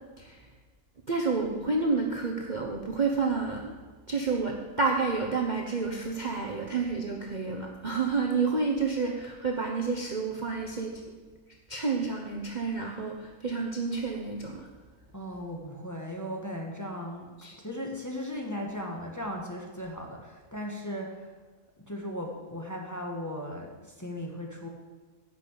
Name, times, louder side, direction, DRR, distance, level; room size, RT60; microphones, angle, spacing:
voice 1, 1.1-3.8 4.1-11.0 11.7-14.7 17.4-17.5, right 4 dB, 35° right, 0 dB, 1.0 m, -29 dB
voice 2, 15.1-17.3 17.6-21.3 21.9-24.7, left 1 dB, 10° left, -1 dB, 1.4 m, -37 dB
11.0 x 6.1 x 8.3 m, 1.4 s
omnidirectional pair, 1.7 m